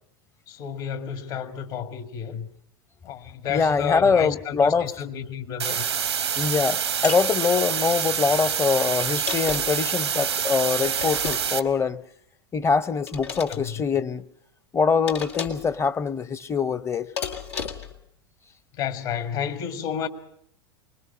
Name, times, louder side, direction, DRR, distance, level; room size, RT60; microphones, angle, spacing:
voice 1, 0.5-2.5 3.0-5.8 13.5-13.8 18.7-20.1, left 8 dB, 55° left, 1.9 m, -31 dB
voice 2, 3.5-4.9 6.4-12.0 12.5-14.2 14.7-17.1, left 5 dB, 20° left, 0.7 m, -23 dB
sound 1, 5.6-11.6, right 7 dB, 90° right, 1.0 m, -26 dB
sound 2, 7.0-7.3 9.0-9.9 11.0-11.7 13.1-13.6 15.1-15.7 17.2-18.0, left 6 dB, 90° left, 2.1 m, -33 dB
25.5 x 20.5 x 5.6 m
hypercardioid pair, 90°, 14 cm